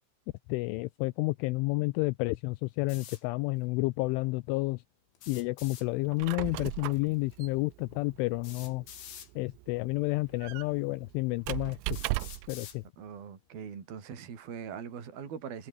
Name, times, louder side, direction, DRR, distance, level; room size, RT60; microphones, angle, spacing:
voice 1, 0.5-4.8 5.3-8.8 9.4-12.0 12.5-12.8, left 23 dB, 85° left, 2.9 m, -30 dB
sound 1, 2.9-3.2 5.2-5.9 7.3-7.4 8.4-9.3 10.3-10.4 11.1-11.2 11.9-12.8, left 9 dB, 65° left, 5.4 m, -47 dB
Squeak, 6.0-12.6, right 21 dB, 80° right, 2.6 m, -38 dB
voice 2, 13.0-15.7, right 7 dB, 50° right, 5.6 m, -41 dB
omnidirectional pair, 5.8 m